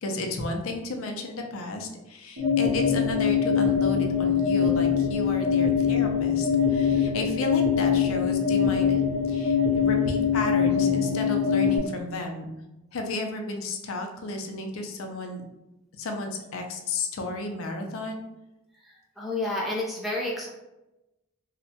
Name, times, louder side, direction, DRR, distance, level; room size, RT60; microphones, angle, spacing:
voice 1, 0.0-9.0 9.3-12.5 12.9-15.4 16.0-18.2, left 2 dB, 70° left, 3 dB, 0.4 m, -33 dB
sound 1, 2.4-11.8, left 7 dB, 70° right, 0.6 m, -23 dB
voice 2, 18.8-20.5, left 2 dB, ahead, -3 dB, 0.4 m, -30 dB
2.8 x 2.1 x 2.7 m, 0.97 s
head